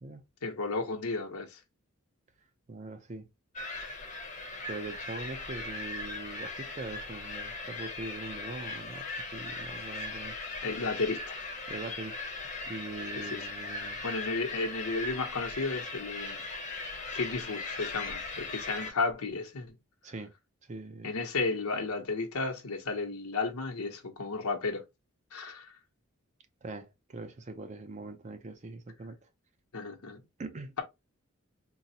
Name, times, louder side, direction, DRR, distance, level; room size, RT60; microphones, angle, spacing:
voice 1, 0.4-1.6 10.6-11.4 13.2-13.5 14.0-16.4 17.1-19.7 21.0-24.8 25.3-25.7 29.7-30.2, left 3 dB, 90° left, 0.8 m, -33 dB
voice 2, 2.7-3.3 4.7-10.4 11.7-12.3 12.7-14.0 20.0-20.3 20.7-21.1 26.6-29.2 30.4-30.8, right 2 dB, 35° right, 0.4 m, -42 dB
sound 1, 3.6-18.9, left 3 dB, 35° left, 0.6 m, -39 dB
3.8 x 2.0 x 2.7 m
head